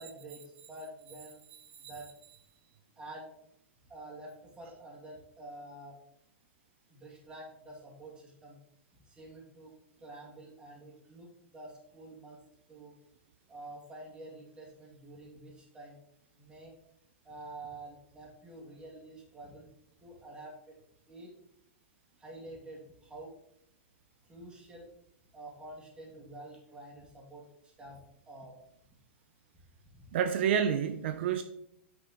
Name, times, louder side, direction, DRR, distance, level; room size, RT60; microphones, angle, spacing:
voice 1, 0.0-1.5 1.8-2.1 3.0-3.3 3.9-6.0 6.9-8.6 9.0-12.4 12.7-12.9 13.5-16.0 16.4-16.7 17.2-19.7 20.0-20.7 21.1-21.3 22.2-23.3 24.2-24.9 25.3-28.0 28.3-28.6 29.9-30.0, right 1 dB, 15° right, -3 dB, 2.5 m, -48 dB
voice 2, 30.1-31.4, right 8 dB, 65° right, 9 dB, 0.5 m, -28 dB
8.6 x 6.0 x 3.0 m, 0.74 s
hypercardioid pair, 135°, 7 cm